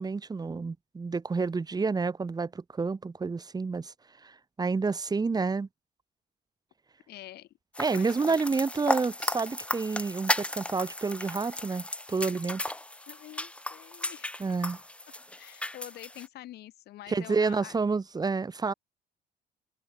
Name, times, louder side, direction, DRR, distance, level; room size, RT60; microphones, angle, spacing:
voice 1, 0.0-3.9 4.2-5.7 7.8-12.6 14.4-14.8 17.1-18.7, right 4 dB, 25° right, 2.4 m, -29 dB
voice 2, 7.1-7.5 7.9-8.4 13.1-14.3 15.4-17.8, left 14 dB, 70° left, 4.3 m, -46 dB
sound 1, 7.7-16.3, left 1 dB, 5° left, 1.6 m, -35 dB
cardioid pair, 110°, 17 cm